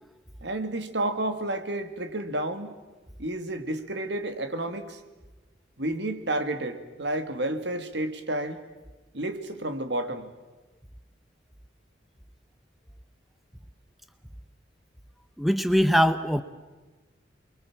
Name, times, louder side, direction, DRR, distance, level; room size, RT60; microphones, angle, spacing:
voice 1, 0.4-2.8 3.2-5.0 5.8-8.6 9.1-10.3, right 1 dB, 65° right, 8 dB, 2.1 m, -31 dB
voice 2, 15.4-16.4, equal, ahead, 10 dB, 0.8 m, -22 dB
29.0 x 23.0 x 7.3 m, 1.2 s
head